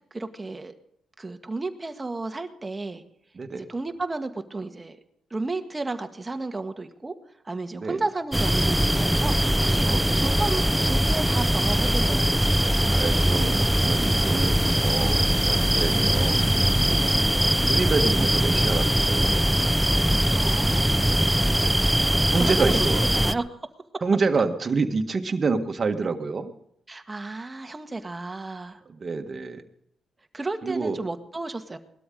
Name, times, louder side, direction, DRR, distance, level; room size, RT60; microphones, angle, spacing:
voice 1, 0.1-0.7 1.2-3.0 3.5-5.0 5.3-7.1 7.4-9.9 10.1-12.9 16.9-17.1 20.3-20.9 22.4-22.8 23.1-23.4 26.9-28.8 30.3-31.8, right 3 dB, 25° right, 7 dB, 1.7 m, -32 dB
voice 2, 3.3-3.7 7.7-8.0 9.8-10.3 12.9-16.5 17.7-19.4 21.3-21.8 22.1-23.3 24.0-26.5 28.9-29.6 30.6-31.0, right 4 dB, 45° right, 6 dB, 1.6 m, -28 dB
sound 1, 8.3-23.3, equal, 5° right, 0.6 m, -21 dB
19.5 x 13.0 x 3.9 m, 0.71 s
supercardioid pair, 60°, 0 cm